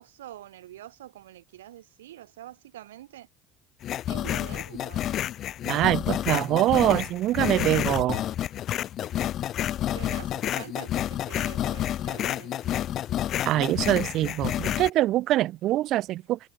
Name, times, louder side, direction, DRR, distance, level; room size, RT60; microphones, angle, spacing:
voice 1, 0.0-3.3 4.1-5.1 9.9-12.7, right 13 dB, 90° right, 1.7 m, -45 dB
sound 1, 3.8-14.9, left 11 dB, 55° left, 0.4 m, -29 dB
voice 2, 5.7-8.2 13.5-16.4, right 15 dB, 60° right, 0.8 m, -24 dB
hypercardioid pair, 80°, 0 cm